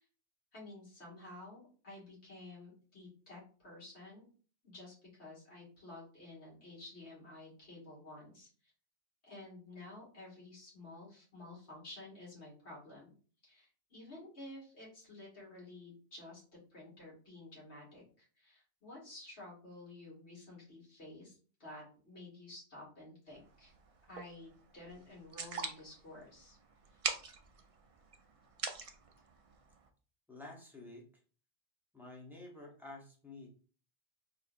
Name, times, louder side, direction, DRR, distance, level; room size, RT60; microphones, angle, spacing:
voice 1, 0.5-4.3 4.6-8.5 9.2-13.1 13.4-16.4 16.7-23.7 24.1-26.6 26.9-27.0, left 2 dB, 70° left, -6 dB, 2.2 m, -52 dB
sound 1, 23.3-29.9, right 5 dB, 65° right, 0.3 m, -44 dB
voice 2, 30.3-31.1 31.9-33.5, left 2 dB, ahead, -1 dB, 0.8 m, -50 dB
4.1 x 2.7 x 2.5 m, 0.40 s
omnidirectional pair, 1.2 m